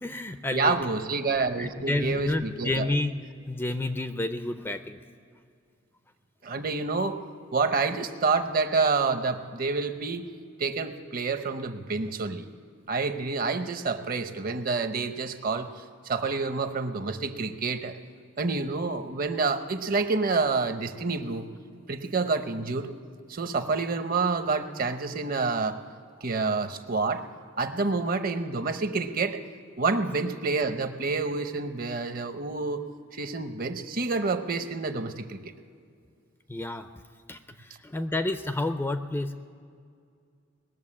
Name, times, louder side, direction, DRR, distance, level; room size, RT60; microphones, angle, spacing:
voice 1, 0.0-0.8 1.6-3.1 3.5-5.0 36.5-36.9 37.3-39.3, left 2 dB, 10° left, 9 dB, 0.4 m, -30 dB
voice 2, 0.5-2.8 6.4-7.2 7.5-10.3 10.6-12.5 12.9-15.7 16.0-17.9 18.4-21.4 21.9-22.9 23.3-25.8 26.2-27.2 27.6-29.4 29.8-35.4, right 4 dB, 45° right, 9 dB, 0.8 m, -28 dB
20.0 x 7.1 x 8.6 m, 2.3 s
head